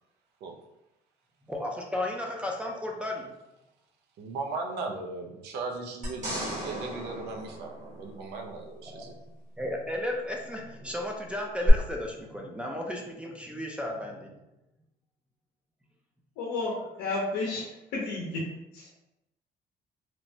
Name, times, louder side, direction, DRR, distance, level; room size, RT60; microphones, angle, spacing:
voice 1, 1.5-3.3 8.9-9.2 9.6-14.3, left 1 dB, 5° right, 0 dB, 0.4 m, -34 dB
voice 2, 4.2-9.1, right 3 dB, 75° right, 2 dB, 0.5 m, -37 dB
sound 1, 6.0-8.5 11.7-11.8, right 1 dB, 45° right, 1.1 m, -36 dB
voice 3, 16.4-16.7 17.0-18.5 18.7-18.9, left 3 dB, 90° left, -4 dB, 0.7 m, -32 dB
3.0 x 2.1 x 2.7 m, 0.93 s
cardioid pair, 110°, 17 cm